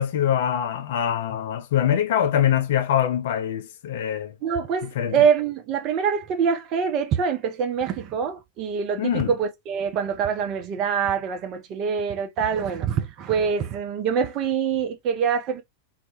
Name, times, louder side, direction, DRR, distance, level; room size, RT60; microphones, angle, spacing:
voice 1, 0.0-4.3 5.0-5.2 9.0-9.3, left 10 dB, 55° left, 0.4 m, -23 dB
voice 2, 4.4-15.6, right 7 dB, 40° right, 0.5 m, -25 dB
2.1 x 2.0 x 2.8 m
figure-of-eight pair, 90°, 0 cm